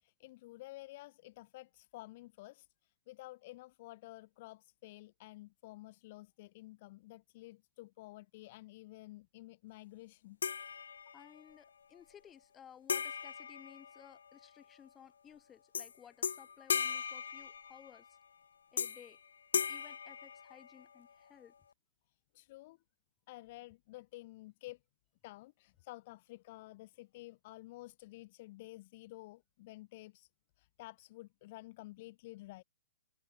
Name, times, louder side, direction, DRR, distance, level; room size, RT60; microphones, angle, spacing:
voice 1, 0.0-10.4 22.3-22.8 23.3-24.8 25.2-30.3 30.6-32.6, left 19 dB, 45° left, 0.7 m, -52 dB
sound 1, 10.4-11.4 12.9-14.5 15.7-15.9 16.2-18.1 18.8-19.2 19.5-21.0, left 7 dB, 80° left, 0.4 m, -38 dB
voice 2, 11.1-18.2 18.7-19.2 19.5-21.5, left 9 dB, 15° left, 2.0 m, -58 dB
hypercardioid pair, 140°, 0 cm